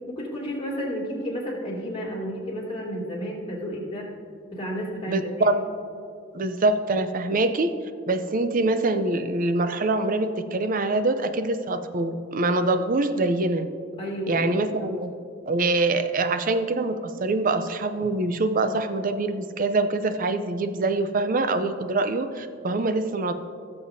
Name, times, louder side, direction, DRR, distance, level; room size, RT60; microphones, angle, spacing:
voice 1, 0.1-4.1 4.5-5.6 14.0-14.9, equal, 30° left, -5 dB, 2.6 m, -32 dB
voice 2, 5.1-5.6 6.3-7.7 8.1-13.6 14.3-15.1 15.5-23.3, right 2 dB, 45° right, 9 dB, 0.6 m, -24 dB
18.0 x 7.0 x 2.7 m, 2.4 s
head